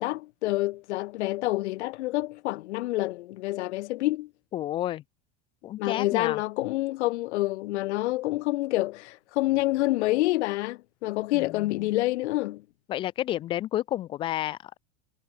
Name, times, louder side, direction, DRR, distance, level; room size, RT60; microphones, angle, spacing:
voice 1, 0.0-4.3 5.8-12.6, left 18 dB, 65° left, 1.3 m, -27 dB
voice 2, 4.5-5.0 5.6-6.4 11.3-11.9 12.9-14.8, left 13 dB, 15° left, 0.4 m, -31 dB
supercardioid pair, 175°, 37 cm